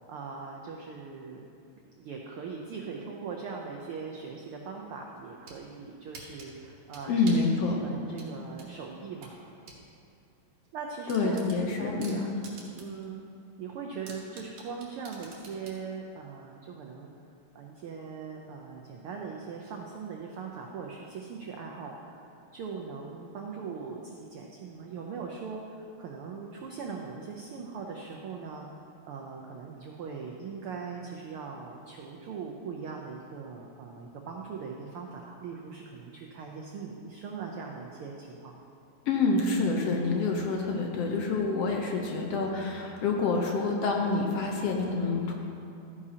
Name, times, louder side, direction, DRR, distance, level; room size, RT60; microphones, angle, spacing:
voice 1, 0.1-1.4 1.9-7.4 7.7-9.4 10.7-12.3 12.6-13.2 13.6-17.1 17.5-28.6 29.1-38.5, right 5 dB, 90° right, 0 dB, 1.2 m, -40 dB
sound 1, 5.2-5.6 6.1-7.5 8.2-9.8 10.2-10.3 10.7-10.8 11.1-13.0 13.4-13.5 14.1-15.8, right 4 dB, 65° right, 2.6 m, -47 dB
voice 2, 7.1-7.8 11.1-12.2 39.1-45.3, left 3 dB, 70° left, 1 dB, 1.7 m, -27 dB
13.5 x 9.7 x 2.8 m, 2.6 s
omnidirectional pair, 3.3 m